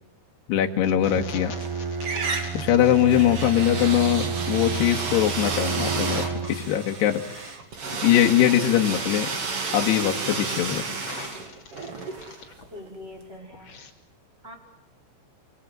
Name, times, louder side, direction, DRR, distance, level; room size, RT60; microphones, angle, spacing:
voice 1, 0.5-1.5 2.5-7.4 8.0-9.3 9.7-10.9, left 11 dB, 70° left, 3 dB, 3.6 m, -22 dB
sound 1, 0.8-12.7 13.0-13.9, left 6 dB, 40° left, 3.5 m, -47 dB
Bowed string instrument, 1.0-6.7, right 6 dB, 65° right, 4.9 m, -31 dB
sound 2, 1.1-1.7 2.0-12.9, right 4 dB, 35° right, 3.1 m, -32 dB
voice 2, 1.4-1.9 12.7-13.9 14.4-14.6, left 1 dB, 15° right, 3 dB, 5.4 m, -43 dB
27.5 x 26.0 x 7.6 m, 0.91 s
omnidirectional pair, 5.1 m